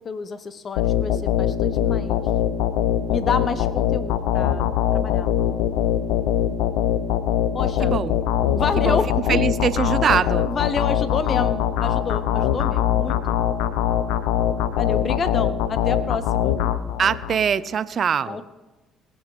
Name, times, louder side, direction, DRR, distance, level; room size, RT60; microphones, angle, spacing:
voice 1, 0.0-2.2 3.1-4.7 4.9-5.3 7.5-8.0 8.5-9.4 10.4-13.4 14.8-16.6 18.3-18.4, left 5 dB, 45° left, 12 dB, 0.9 m, -29 dB
sound 1, 0.8-17.4, left 10 dB, 80° left, 0.7 m, -22 dB
voice 2, 7.8-8.2 8.8-9.0 9.3-10.5 17.0-18.4, right 7 dB, 50° right, 16 dB, 0.7 m, -22 dB
20.5 x 7.2 x 4.9 m, 1.1 s
hypercardioid pair, 55°, 0 cm